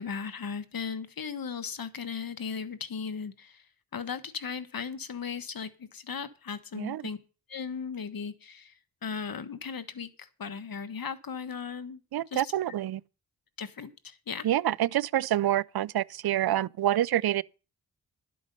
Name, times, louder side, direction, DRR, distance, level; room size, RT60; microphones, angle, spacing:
voice 1, 0.0-3.6 3.9-7.2 7.5-8.7 9.0-12.0 12.3-12.5 13.6-14.5, left 6 dB, 60° left, 1.4 m, -37 dB
voice 2, 12.1-13.0 14.4-17.4, right 12 dB, 70° right, 0.5 m, -27 dB
12.5 x 8.4 x 5.4 m
cardioid pair, 55°, 39 cm